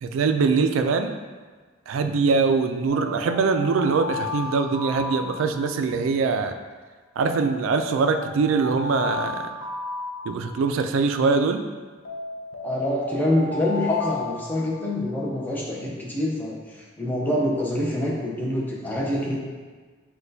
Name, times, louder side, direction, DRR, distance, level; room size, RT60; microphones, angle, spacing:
voice 1, 0.0-1.2 1.9-6.5 7.2-9.4 10.3-11.6, right 4 dB, 85° right, 7 dB, 0.3 m, -23 dB
sound 1, 2.9-6.1 7.2-10.9 12.1-15.3, left 3 dB, 75° left, 0.5 m, -34 dB
voice 2, 12.6-19.4, left 1 dB, 10° left, -4 dB, 0.6 m, -26 dB
5.9 x 2.2 x 2.6 m, 1.4 s
head